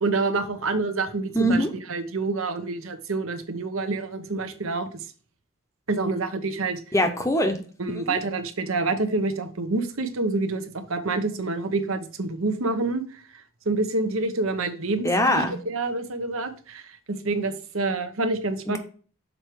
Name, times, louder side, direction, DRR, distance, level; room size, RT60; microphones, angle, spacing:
voice 1, 0.0-1.6 1.9-4.9 5.9-6.8 7.8-13.2 13.7-18.8, right 3 dB, 75° right, 9 dB, 0.9 m, -27 dB
voice 2, 1.3-1.7 6.9-7.6 8.1-8.2 15.0-15.6 18.7-18.8, equal, 15° left, 6 dB, 0.7 m, -22 dB
6.6 x 4.5 x 4.6 m, 0.41 s
head